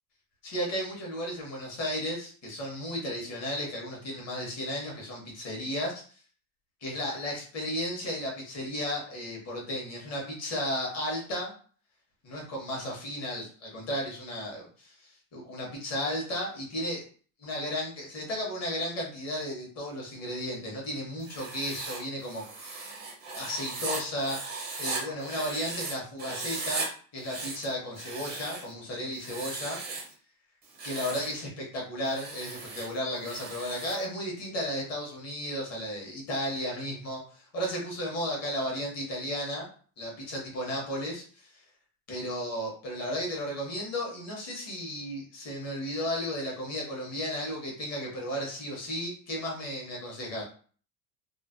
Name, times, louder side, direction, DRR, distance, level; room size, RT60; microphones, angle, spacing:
voice 1, 0.4-6.0 6.8-11.5 12.2-17.0 17.4-24.4 24.8-26.8 27.1-29.8 30.8-39.7 40.0-41.6 42.1-50.4, equal, 35° left, -2 dB, 1.0 m, -34 dB
Writing, 21.2-25.9 26.2-26.9 27.2-28.7 29.2-30.1 30.6-31.3 32.0-34.0, right 3 dB, 20° right, 0.4 m, -37 dB
3.1 x 2.1 x 2.5 m, 0.43 s
cardioid pair, 165°, 47 cm